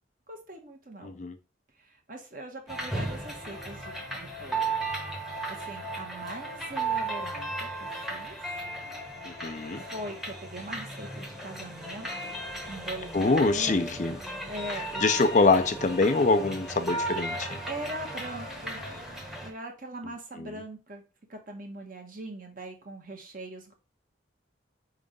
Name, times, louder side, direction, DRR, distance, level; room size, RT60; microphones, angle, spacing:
voice 1, 0.3-1.1 1.8-4.7 5.2-8.4 9.8-12.3 12.7-13.8 14.5-15.0 17.7-18.8 19.4-21.0 21.3-23.7, right 1 dB, 45° right, 1.4 m, -41 dB
voice 2, 1.0-1.4 9.3-9.8 13.1-14.2 15.0-17.6 20.4-20.5, left 3 dB, 40° left, 0.5 m, -24 dB
sound 1, 2.7-19.5, right 2 dB, ahead, 1.1 m, -35 dB
4.8 x 3.7 x 5.2 m
head